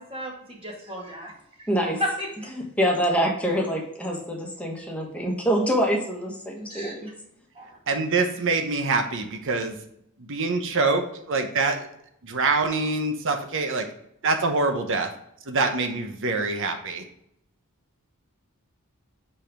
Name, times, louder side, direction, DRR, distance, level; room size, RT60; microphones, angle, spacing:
voice 1, 0.0-1.3 2.0-2.5 6.7-7.0 7.6-7.8, equal, 25° right, -2 dB, 2.1 m, -33 dB
voice 2, 1.7-2.0 2.5-7.1, equal, 5° left, -1 dB, 1.4 m, -25 dB
voice 3, 7.9-9.8 10.3-11.9 12.2-13.9 14.2-15.1 15.5-17.0, right 3 dB, 60° right, 6 dB, 1.0 m, -25 dB
5.6 x 5.0 x 4.9 m, 0.75 s
head